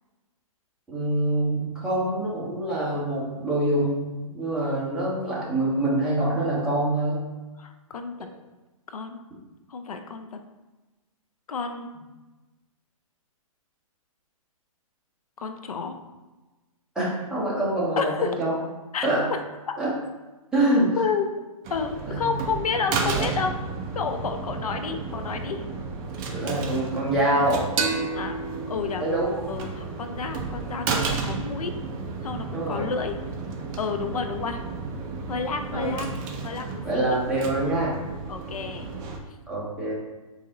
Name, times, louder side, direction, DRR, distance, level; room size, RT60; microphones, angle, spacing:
voice 1, 0.9-4.1 4.3-7.2 16.9-18.5 19.0-19.3 19.8-19.9 20.5-21.0 22.1-22.3 23.1-23.3 26.3-27.7 29.0-29.3 32.5-32.9 35.7-36.1 36.8-38.0 39.5-39.9, right 1 dB, 5° right, -8 dB, 1.2 m, -25 dB
voice 2, 7.6-8.2 8.9-9.3 9.7-10.3 11.5-11.9 15.4-16.0 18.0-18.4 18.9-19.1 21.0-21.3 21.7-23.5 23.9-25.6 28.1-28.4 28.7-29.0 29.5-31.7 32.2-33.2 33.8-34.6 35.3-36.1 36.4-37.2 38.3-38.9, left 5 dB, 85° left, 6 dB, 0.5 m, -30 dB
sound 1, 21.6-39.2, right 4 dB, 20° right, 0.4 m, -33 dB
sound 2, 27.8-31.1, right 4 dB, 65° right, 0.8 m, -32 dB
3.9 x 2.8 x 3.8 m, 1.2 s
hypercardioid pair, 140°, 18 cm